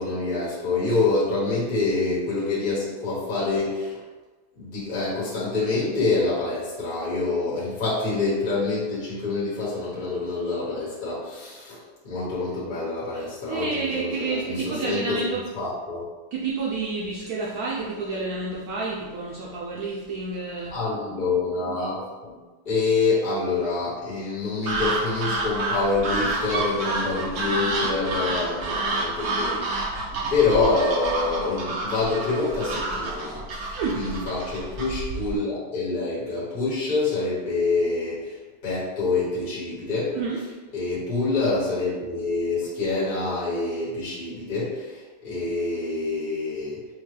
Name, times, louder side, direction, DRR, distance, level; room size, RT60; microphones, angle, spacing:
voice 1, 0.0-4.0 4.6-15.3 15.5-16.0 20.7-22.3 22.6-29.8 30.3-38.4 38.6-40.1 40.7-46.8, left 3 dB, 30° left, -8 dB, 1.1 m, -26 dB
voice 2, 13.1-15.4 16.3-20.7 33.7-34.0 40.1-40.4, right 4 dB, 85° right, -4 dB, 0.8 m, -29 dB
sound 1, 24.7-35.4, right 2 dB, 65° right, 1.0 m, -29 dB
5.2 x 2.2 x 3.2 m, 1.2 s
omnidirectional pair, 2.2 m